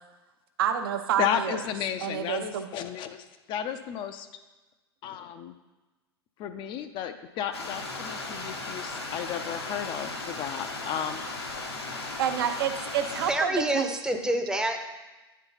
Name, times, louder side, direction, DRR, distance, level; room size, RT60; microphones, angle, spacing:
voice 1, 0.6-1.6 2.0-2.7 12.2-13.9, right 9 dB, 60° right, 7 dB, 0.7 m, -28 dB
voice 2, 1.2-4.3 5.0-5.6 6.4-11.2, left 9 dB, 35° left, 9 dB, 0.5 m, -33 dB
Stream, 7.5-13.3, left 3 dB, 80° left, 1.1 m, -36 dB
voice 3, 13.3-14.8, right 1 dB, 5° right, 5 dB, 0.7 m, -27 dB
9.4 x 4.6 x 3.9 m, 1.2 s
figure-of-eight pair, 85°, 13 cm